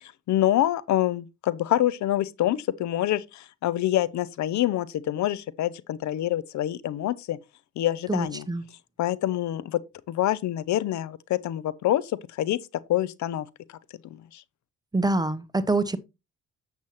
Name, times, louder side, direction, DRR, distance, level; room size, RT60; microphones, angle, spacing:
voice 1, 0.0-7.4 7.8-8.4 9.0-9.8 10.1-12.6 12.9-13.5 14.3-14.4, left 13 dB, 70° left, 0.6 m, -26 dB
voice 2, 8.1-8.6 14.9-16.0, right 2 dB, 15° right, 0.9 m, -25 dB
7.6 x 7.2 x 3.0 m
cardioid pair, 90°, 30 cm